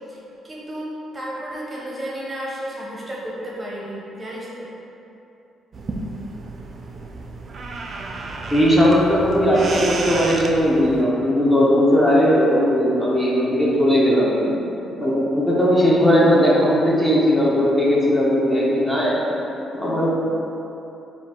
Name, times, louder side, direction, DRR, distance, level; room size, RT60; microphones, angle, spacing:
voice 1, 0.1-4.7, equal, 25° right, -4 dB, 0.7 m, -33 dB
sound 1, 5.7-11.0, right 2 dB, 45° right, 0.4 m, -32 dB
voice 2, 8.5-14.6 14.8-19.4 19.7-20.1, equal, 15° left, -5 dB, 0.8 m, -18 dB
4.5 x 2.3 x 3.7 m, 2.9 s
cardioid pair, 90°, 0 cm